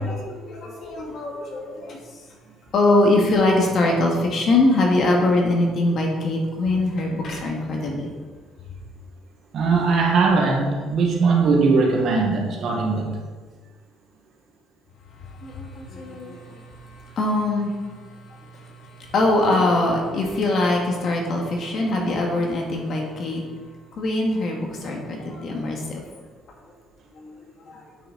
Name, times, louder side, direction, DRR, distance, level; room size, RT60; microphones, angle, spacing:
voice 1, 0.0-2.0 2.7-8.1 15.3-18.0 18.3-23.4 23.9-26.0 27.1-27.8, left 2 dB, 50° left, 0 dB, 1.8 m, -23 dB
voice 2, 9.5-13.1, right 4 dB, 55° right, 1 dB, 1.6 m, -20 dB
9.1 x 6.1 x 4.0 m, 1.4 s
cardioid pair, 130°, 0 cm